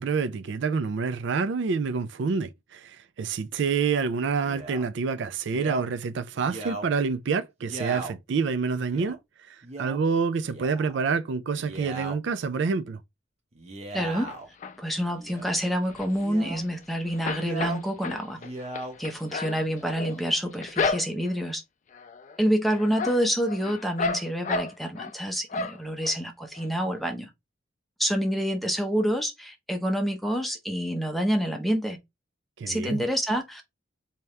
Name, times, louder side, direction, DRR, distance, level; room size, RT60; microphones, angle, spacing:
voice 1, 0.0-13.0 32.6-33.0, right 5 dB, 65° right, 0.4 m, -27 dB
Male speech man speaking, 4.4-4.9 5.5-5.8 6.4-6.9 7.6-8.1 8.9-9.1 9.6-10.0 10.4-11.0 11.5-12.2 13.5-14.5 15.1-15.6 16.2-16.7 17.3-17.8 18.3-18.9 19.6-20.2, right 3 dB, 35° right, 0.9 m, -38 dB
voice 2, 13.9-14.3 14.8-18.4 19.0-21.6 22.4-27.3 28.0-32.0 32.7-33.6, equal, ahead, 0.6 m, -27 dB
sound 1, 14.3-15.0 15.5-16.8 17.1-21.5 21.9-22.4 22.7-25.2 25.5-26.2 26.6-26.7 26.9-27.0, left 4 dB, 40° left, 0.4 m, -33 dB
3.4 x 2.8 x 3.2 m
head